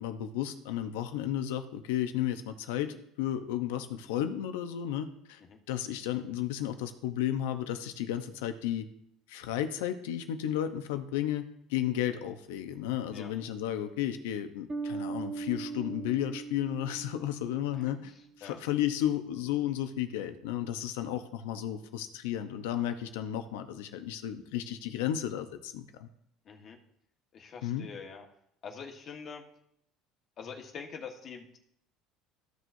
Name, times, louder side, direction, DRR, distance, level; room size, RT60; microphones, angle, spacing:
voice 1, 0.0-5.4 5.7-8.9 9.3-18.1 18.4-26.1 27.6-27.9, left 11 dB, 85° left, 8 dB, 0.9 m, -33 dB
Bass guitar, 14.7-18.2, right 4 dB, 25° right, 1.3 m, -39 dB
voice 2, 17.7-18.6 26.4-26.8 27.3-28.3 28.6-29.4 30.4-31.6, left 6 dB, 45° left, 2 dB, 1.5 m, -45 dB
14.5 x 6.4 x 2.7 m, 0.73 s
supercardioid pair, 105°, 0 cm